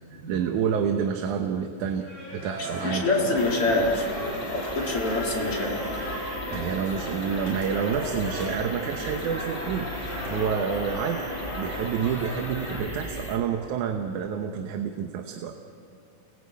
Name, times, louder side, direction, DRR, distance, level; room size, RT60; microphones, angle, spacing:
voice 1, 0.1-3.1 6.5-11.3 11.6-15.5, right 7 dB, 80° right, 5 dB, 2.5 m, -29 dB
Singing, 2.0-12.2, equal, 20° left, 7.3 m, -40 dB
sound 1, 2.6-12.8, left 1 dB, 70° left, 8.9 m, -36 dB
voice 2, 2.8-4.1 4.5-5.8, left 2 dB, 45° left, -2 dB, 4.4 m, -25 dB
sound 2, 3.4-13.4, equal, 5° right, 3.0 m, -38 dB
29.0 x 20.5 x 8.5 m, 2.8 s
omnidirectional pair, 3.5 m